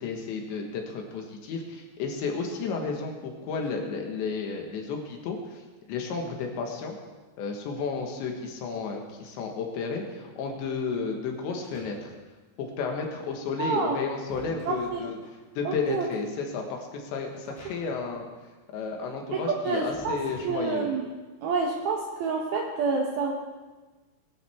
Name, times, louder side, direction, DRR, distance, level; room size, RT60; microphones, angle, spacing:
voice 1, 0.0-5.6 5.9-7.0 7.4-12.1 12.6-15.2 15.6-18.3 18.7-20.9, left 4 dB, 70° left, 2 dB, 3.5 m, -32 dB
sound 1, 11.5-12.4 13.6-15.5 17.3-18.1 18.4-18.5 19.9-21.0, equal, 20° left, 4.8 m, -49 dB
voice 2, 13.6-14.0 14.7-15.0 15.6-16.1 19.3-20.2 20.4-21.0 21.4-23.3, right 4 dB, 75° right, 0 dB, 2.3 m, -28 dB
20.5 x 11.5 x 3.5 m, 1.2 s
omnidirectional pair, 5.6 m